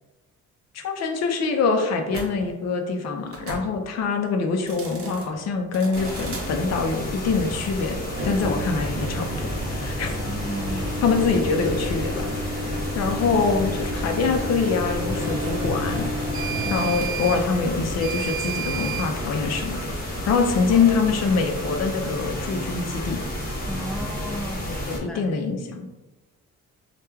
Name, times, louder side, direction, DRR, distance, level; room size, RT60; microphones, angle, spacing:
voice 1, 0.7-10.1 11.0-12.3 12.9-16.1 16.7-19.8 20.3-23.2 24.9-25.9, left 4 dB, 60° left, 4 dB, 0.5 m, -24 dB
sound 1, 2.1-2.3 3.3-3.7 4.6-5.3 5.7-6.5 8.1-19.1, right 1 dB, 45° right, 0.7 m, -31 dB
sound 2, 5.9-25.0, left 1 dB, 30° left, 0.8 m, -31 dB
voice 2, 10.1-10.9 13.1-13.7 16.6-16.9 20.6-21.4 23.7-25.3, equal, ahead, 1 dB, 0.3 m, -35 dB
3.0 x 2.3 x 2.2 m, 1.1 s
cardioid pair, 90°, 30 cm